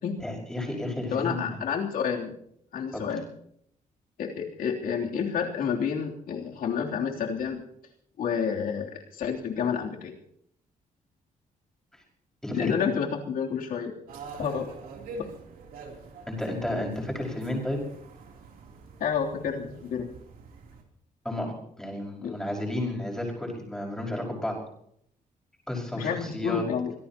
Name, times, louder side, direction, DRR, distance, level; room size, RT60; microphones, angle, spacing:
voice 1, 0.2-1.6 2.9-3.0 11.9-12.0 12.4-12.7 16.3-17.8 21.2-24.6 25.7-26.6, left 1 dB, 5° left, -2 dB, 5.7 m, -32 dB
voice 2, 1.1-2.4 2.7-3.2 4.2-7.6 8.2-10.1 12.5-13.9 14.4-14.7 19.0-20.1 22.2-22.3 25.9-26.9, left 7 dB, 85° left, 0 dB, 3.3 m, -29 dB
sound 1, 14.1-20.8, right 3 dB, 80° right, 3.3 m, -45 dB
24.5 x 18.0 x 3.0 m, 0.70 s
wide cardioid pair, 165°, 14 cm